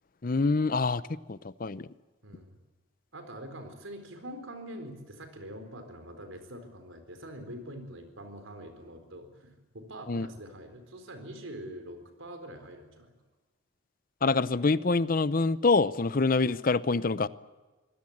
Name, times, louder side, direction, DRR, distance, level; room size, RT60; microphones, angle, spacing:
voice 1, 0.2-1.0 1.3-1.9 10.1-10.3 14.2-17.3, left 3 dB, 45° left, 17 dB, 0.6 m, -25 dB
voice 2, 2.2-2.6 3.1-13.1, right 1 dB, 85° right, 8 dB, 4.1 m, -44 dB
24.0 x 17.0 x 8.6 m, 1.3 s
head